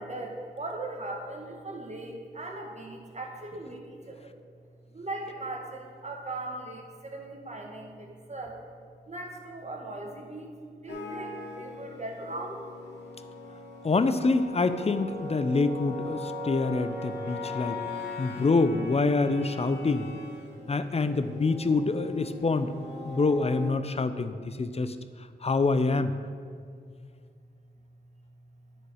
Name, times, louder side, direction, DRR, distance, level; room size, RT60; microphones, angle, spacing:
voice 1, 0.0-4.3 4.9-8.6 9.1-12.7 17.2-17.3 23.1-23.2, right 2 dB, 40° right, 1 dB, 1.5 m, -39 dB
sound 1, 10.9-23.7, left 2 dB, 85° left, 1.1 m, -40 dB
voice 2, 13.8-17.8 18.2-20.1 20.7-22.7 23.0-24.9 25.4-26.1, left 3 dB, 35° left, 11 dB, 0.6 m, -26 dB
9.9 x 4.5 x 6.3 m, 2.1 s
cardioid pair, 45°, 17 cm